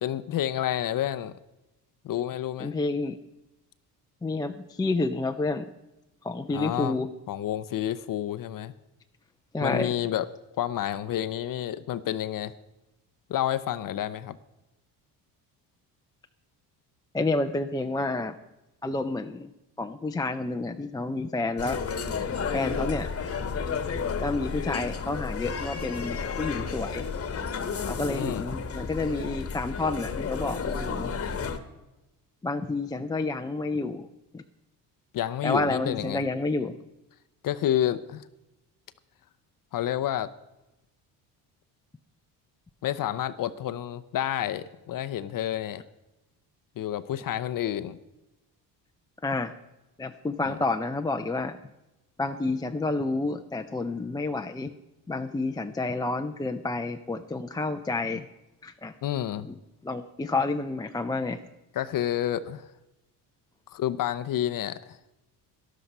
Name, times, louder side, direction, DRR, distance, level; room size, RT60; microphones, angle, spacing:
voice 1, 0.0-1.3 2.0-2.7 6.5-8.7 9.6-10.3 10.6-12.5 13.3-14.4 28.0-28.4 35.1-36.2 37.4-38.3 39.7-40.3 42.8-45.8 46.8-48.0 50.4-50.6 59.0-59.5 61.7-62.7 63.7-65.0, left 11 dB, 50° left, 13 dB, 0.6 m, -29 dB
voice 2, 2.6-3.2 4.2-5.7 6.2-7.1 9.5-9.9 17.1-18.4 18.8-19.5 19.8-21.8 22.5-23.1 24.2-27.1 27.9-31.1 32.4-34.1 34.3-34.4 35.4-36.7 49.2-49.5 50.0-51.6 52.2-54.7 55.1-58.3 58.6-58.9 59.4-59.6 59.8-61.4, left 2 dB, 10° left, 6 dB, 0.4 m, -29 dB
sound 1, 21.6-31.6, left 5 dB, 35° left, 1.2 m, -32 dB
12.5 x 11.5 x 5.4 m, 0.98 s
cardioid pair, 100°, 42 cm